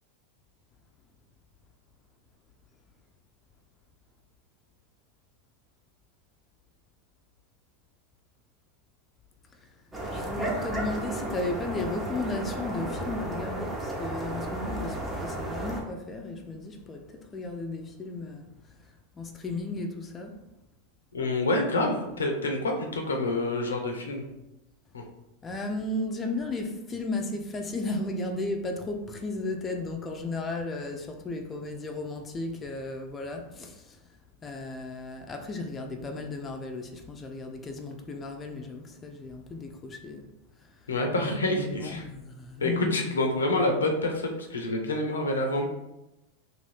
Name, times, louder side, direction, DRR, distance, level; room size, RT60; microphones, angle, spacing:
sound 1, 9.9-15.8, right 1 dB, 15° right, 0.7 m, -33 dB
voice 1, 10.1-20.4 25.4-34.1 34.4-40.3 40.6-40.9 41.5-43.0, left 2 dB, 25° left, 0.4 m, -35 dB
voice 2, 21.1-24.2 24.9-25.0 40.9-42.0 42.6-45.7, left 2 dB, 80° left, 0.5 m, -27 dB
2.6 x 2.6 x 3.4 m
hypercardioid pair, 90°, 0 cm